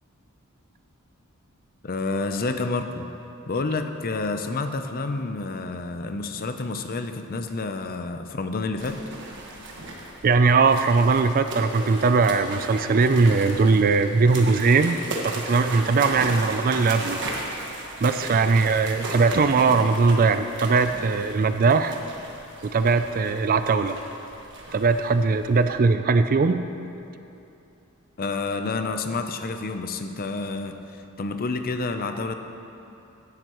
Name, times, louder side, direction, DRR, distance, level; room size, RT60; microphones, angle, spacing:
voice 1, 1.8-3.1 3.5-9.0 28.2-32.3, left 3 dB, 40° left, 7 dB, 0.6 m, -29 dB
sound 1, 8.8-25.8, right 2 dB, 55° right, 1.5 m, -36 dB
voice 2, 10.2-15.0 15.2-17.2 18.0-22.0 22.6-24.0 24.7-26.6, right 4 dB, 40° right, 10 dB, 0.4 m, -20 dB
16.0 x 11.0 x 3.1 m, 2.8 s
head